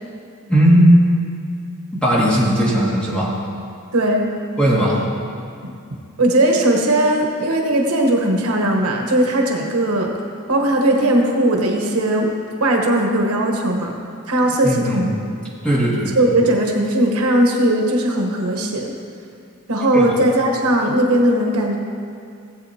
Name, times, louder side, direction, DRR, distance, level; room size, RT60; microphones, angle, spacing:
voice 1, 0.5-1.0 1.9-3.3 4.6-5.1 14.6-15.1 15.6-16.2 19.9-20.0, equal, 5° left, -8 dB, 2.0 m, -16 dB
voice 2, 3.9-4.3 5.6-10.1 10.5-12.3 12.6-13.9 14.3-15.1 16.2-18.9 19.7-21.8, right 1 dB, 80° right, 1 dB, 1.2 m, -18 dB
17.0 x 7.9 x 2.8 m, 2.4 s
head